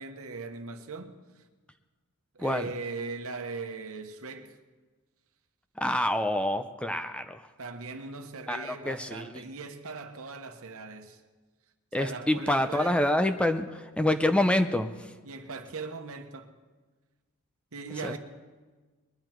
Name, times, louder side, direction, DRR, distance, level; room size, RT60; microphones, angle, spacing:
voice 1, 0.0-1.4 2.3-4.6 7.6-11.2 12.0-13.0 15.2-16.5 17.7-18.2, right 4 dB, 70° right, 1.1 m, -39 dB
voice 2, 5.8-7.4 8.5-9.4 11.9-14.9 18.0-18.2, left 1 dB, 5° left, 0.5 m, -27 dB
21.0 x 11.0 x 4.6 m
head